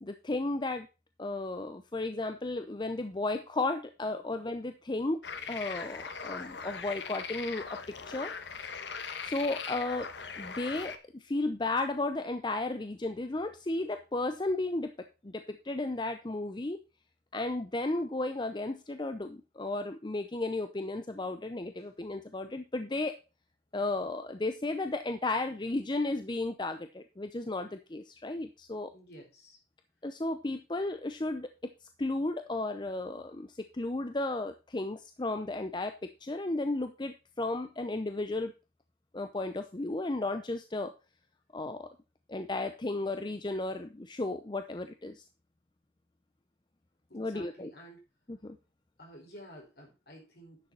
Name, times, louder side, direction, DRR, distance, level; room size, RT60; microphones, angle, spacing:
voice 1, 0.0-0.9 1.2-5.2 5.5-7.8 8.1-8.3 9.2-10.1 10.4-14.9 15.2-16.8 17.3-23.2 23.7-28.9 30.0-31.5 32.0-35.9 36.2-38.5 39.1-40.9 41.5-41.9 42.3-45.2 47.1-47.7 48.3-48.6, left 2 dB, 25° left, 8 dB, 0.6 m, -34 dB
sound 1, 5.2-11.0, left 5 dB, 80° left, 1.2 m, -40 dB
voice 2, 28.9-29.6 47.1-48.1 49.0-50.7, equal, 60° left, 1 dB, 4.9 m, -52 dB
10.5 x 6.9 x 4.1 m, 0.30 s
head